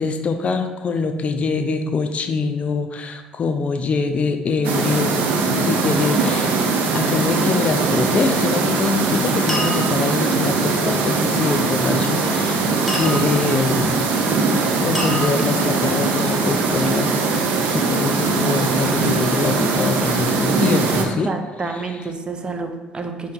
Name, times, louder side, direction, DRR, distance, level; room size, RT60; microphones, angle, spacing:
voice 1, 0.0-14.1 14.7-17.2 17.7-21.3 21.7-22.1, left 4 dB, 40° left, 7 dB, 0.4 m, -24 dB
sound 1, 4.6-21.0, right 4 dB, 70° right, 0.6 m, -20 dB
sound 2, 8.6-8.8 9.5-10.2 12.9-13.6 14.9-15.8, equal, ahead, 1.2 m, -28 dB
voice 2, 21.0-23.3, right 3 dB, 30° right, 5 dB, 0.5 m, -29 dB
5.4 x 2.6 x 3.8 m, 1.2 s
supercardioid pair, 75°, 3 cm